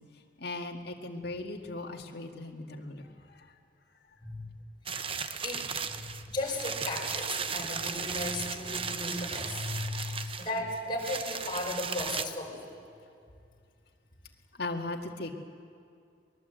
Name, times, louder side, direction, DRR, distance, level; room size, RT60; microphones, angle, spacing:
voice 1, 0.1-3.6 14.5-15.3, left 2 dB, 65° left, 1 dB, 2.1 m, -38 dB
sound 1, 4.9-12.2, right 6 dB, 30° right, 0.8 m, -36 dB
voice 2, 5.4-12.7, left 2 dB, 30° left, -2 dB, 5.4 m, -36 dB
23.5 x 21.0 x 8.1 m, 2.3 s
head